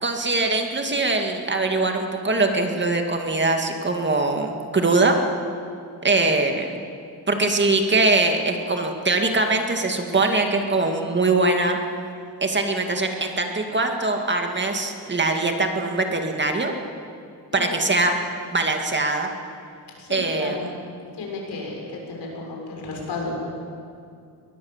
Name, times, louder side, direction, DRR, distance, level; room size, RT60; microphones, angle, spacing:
voice 1, 0.0-5.2 6.0-6.7 7.3-11.8 12.4-16.7 17.5-18.2 18.5-19.3 20.1-20.6, right 3 dB, 25° right, 4 dB, 2.1 m, -22 dB
voice 2, 17.5-17.9 20.0-20.7 21.1-23.3, left 3 dB, 80° left, -1 dB, 6.5 m, -33 dB
22.5 x 19.5 x 7.4 m, 2.4 s
wide cardioid pair, 130°, 40 cm